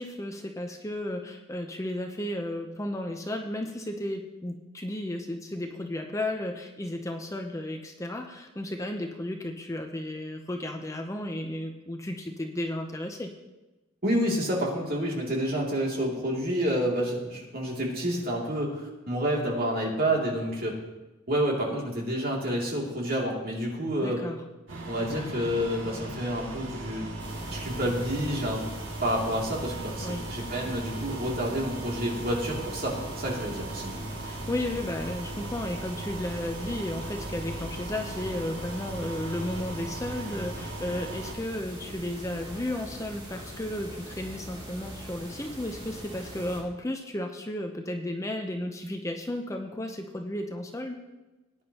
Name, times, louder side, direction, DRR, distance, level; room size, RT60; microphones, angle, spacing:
voice 1, 0.0-13.3 24.0-24.4 30.0-30.2 34.2-51.0, left 1 dB, 15° left, 4 dB, 0.7 m, -34 dB
voice 2, 14.0-20.8 21.3-24.2 24.9-27.1 27.5-28.6 29.0-33.9, equal, 50° right, -2 dB, 2.7 m, -29 dB
sound 1, 24.7-41.3, right 2 dB, 70° right, 2.5 m, -38 dB
sound 2, 27.2-46.6, right 1 dB, 25° right, 3.0 m, -42 dB
19.5 x 9.8 x 2.9 m, 1.1 s
head